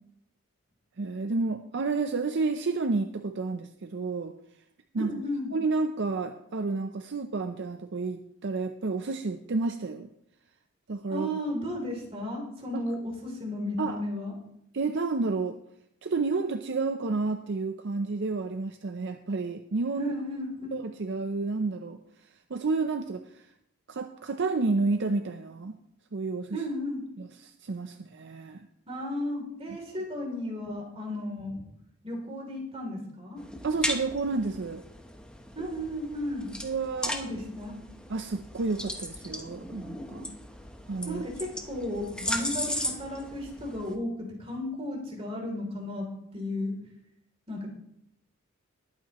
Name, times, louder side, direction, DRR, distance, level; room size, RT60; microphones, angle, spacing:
voice 1, 1.0-4.3 4.9-5.2 5.5-10.1 10.9-11.3 12.7-12.8 13.8-14.0 14.7-15.6 16.0-20.1 20.7-23.5 23.9-25.7 26.1-26.6 27.2-28.7 33.6-34.8 36.6-37.1 38.1-40.3 40.9-41.2, right 3 dB, 55° right, 7 dB, 0.6 m, -30 dB
voice 2, 5.0-5.6 11.1-14.3 20.0-20.7 26.5-27.0 28.9-31.6 32.0-33.4 35.5-36.5 37.1-37.7 41.1-46.1 46.3-46.7 47.5-47.7, left 1 dB, 30° right, -1 dB, 3.1 m, -34 dB
sound 1, 33.4-43.9, left 1 dB, 5° left, 0.9 m, -37 dB
20.0 x 8.7 x 3.0 m, 0.75 s
head